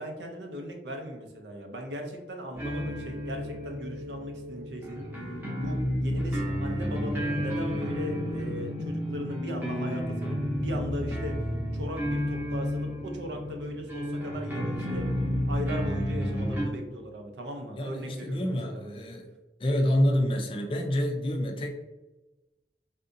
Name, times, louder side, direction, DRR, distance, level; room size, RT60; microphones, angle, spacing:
voice 1, 0.0-5.1 5.5-11.4 11.7-15.1 15.5-19.0, equal, 80° right, 3 dB, 0.6 m, -38 dB
sound 1, 2.5-16.6, equal, 10° right, 0.7 m, -31 dB
voice 2, 17.8-19.3 19.6-21.7, equal, 30° left, 2 dB, 0.4 m, -27 dB
3.4 x 2.7 x 2.6 m, 1.1 s
head